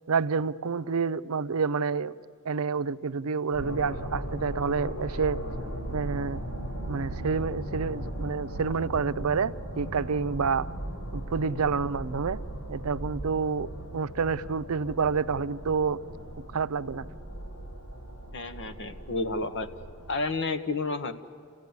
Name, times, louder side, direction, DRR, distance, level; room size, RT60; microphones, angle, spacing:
voice 1, 0.1-2.1 2.5-5.4 5.9-6.4 6.9-10.7 11.1-12.4 12.7-13.7 13.9-16.0 16.5-17.1, right 5 dB, 85° right, 0.5 m, -28 dB
sound 1, 3.5-20.2, right 1 dB, 85° left, 6.4 m, -37 dB
voice 2, 18.3-19.7 20.1-21.1, left 3 dB, 60° left, 1.2 m, -30 dB
29.5 x 15.5 x 9.6 m
head